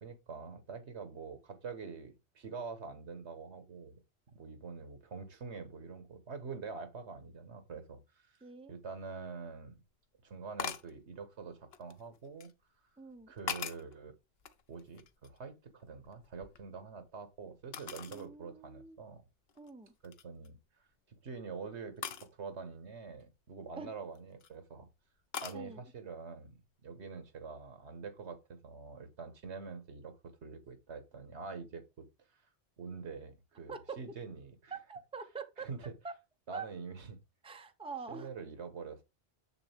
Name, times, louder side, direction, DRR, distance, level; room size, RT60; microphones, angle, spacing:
voice 1, 0.0-4.0 4.3-9.8 10.2-12.5 13.3-14.1 14.7-19.2 20.0-20.9 21.2-24.9 25.4-32.1 32.3-32.5 32.8-34.7 35.6-35.9 36.5-37.2 38.1-39.0, right 5 dB, 80° right, 1.6 m, -46 dB
voice 2, 8.4-8.7 13.0-13.3 18.1-19.0 19.6-19.9 23.8-23.9 25.5-25.8 33.7-34.0 34.7-35.7 36.0-36.1 36.5-36.7 37.4-38.3, right 5 dB, 5° right, 0.7 m, -44 dB
sound 1, 9.1-9.2 10.6-10.9 11.7-12.5 13.1-13.9 14.4-15.5 15.8-17.1 17.7-18.3 18.8-18.9 19.5-19.7 20.0-20.5 22.0-22.3 24.0-24.5 25.3-25.6, left 7 dB, 65° left, 1.0 m, -42 dB
7.1 x 6.8 x 3.4 m
omnidirectional pair, 1.1 m